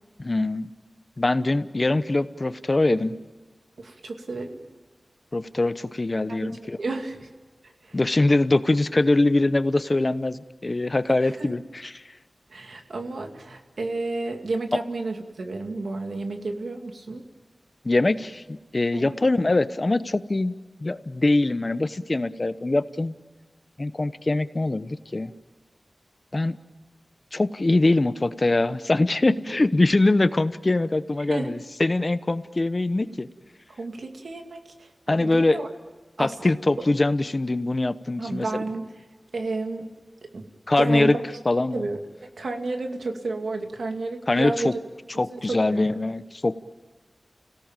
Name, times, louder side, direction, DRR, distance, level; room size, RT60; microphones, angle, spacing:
voice 1, 0.2-0.7 1.2-3.1 5.3-6.8 7.9-12.0 17.8-20.5 20.8-23.1 23.8-25.3 26.3-26.6 27.3-33.3 35.1-35.7 36.2-38.5 40.7-41.2 41.4-41.8 44.3-44.7 45.2-46.6, left 2 dB, 40° left, 13 dB, 0.9 m, -23 dB
voice 2, 3.8-4.6 6.3-7.3 7.8-8.0 11.1-11.6 12.5-17.2 18.9-19.1 29.3-29.5 31.3-31.5 33.8-35.7 36.2-36.5 38.2-38.9 39.3-39.9 40.3-40.4 40.8-41.2 41.7-42.0 42.4-44.8 45.3-45.9, right 3 dB, 85° right, 4 dB, 2.5 m, -31 dB
30.0 x 17.5 x 9.0 m, 1.3 s
wide cardioid pair, 65°, 0 cm